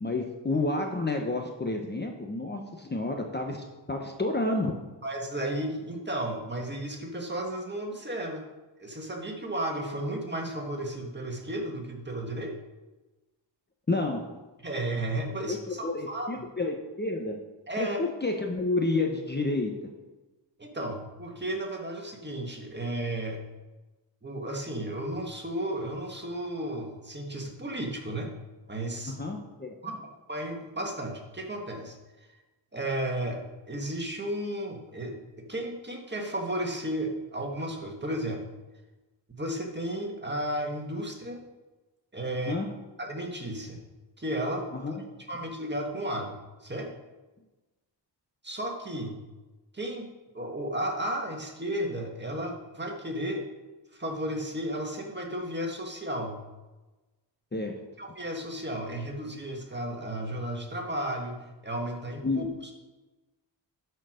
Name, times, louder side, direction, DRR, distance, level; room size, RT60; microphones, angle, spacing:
voice 1, 0.0-4.8 13.9-14.3 15.5-17.4 17.8-19.7 29.0-29.9 42.5-42.7 44.8-44.9 57.5-57.7 62.2-62.5, left 2 dB, 25° left, 2 dB, 1.0 m, -30 dB
voice 2, 5.0-8.4 8.8-12.5 14.6-16.4 17.7-18.0 20.6-23.4 24.2-28.3 28.7-29.2 29.8-29.9 30.3-32.0 32.7-35.2 35.5-38.4 39.3-41.4 42.1-42.5 43.0-43.8 44.2-44.6 45.3-46.4 46.6-46.9 48.4-49.2 49.7-50.1 50.3-53.5 53.9-56.4 58.0-62.7, right 1 dB, 25° right, 1 dB, 1.7 m, -33 dB
12.0 x 4.6 x 5.0 m, 1.1 s
wide cardioid pair, 85°, 45 cm